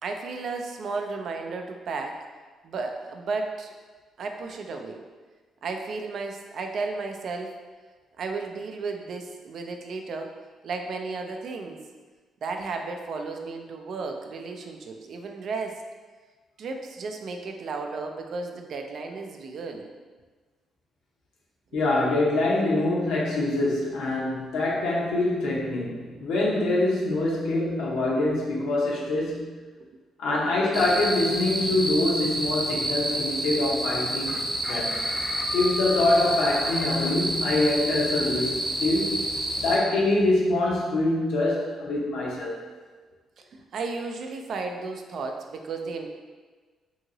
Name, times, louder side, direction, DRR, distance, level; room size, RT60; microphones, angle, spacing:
voice 1, 0.0-2.2 2.6-3.7 4.2-5.0 5.6-7.5 8.2-10.3 10.6-11.8 12.4-15.8 16.6-19.9 21.7-21.8 29.8-29.9 34.3-34.5 35.1-35.2 43.4-46.1, right 4 dB, 60° right, 4 dB, 0.3 m, -34 dB
voice 2, 21.7-29.5 30.2-34.3 34.6-35.0 35.5-39.2 39.6-42.6, left 2 dB, 85° left, -4 dB, 0.7 m, -24 dB
sound 1, 30.7-39.8, right 1 dB, 10° right, 0.5 m, -29 dB
Chicken rooster, 34.3-37.2, left 2 dB, 35° left, 0.3 m, -39 dB
2.8 x 2.7 x 2.7 m, 1.4 s
cardioid pair, 90°, 0 cm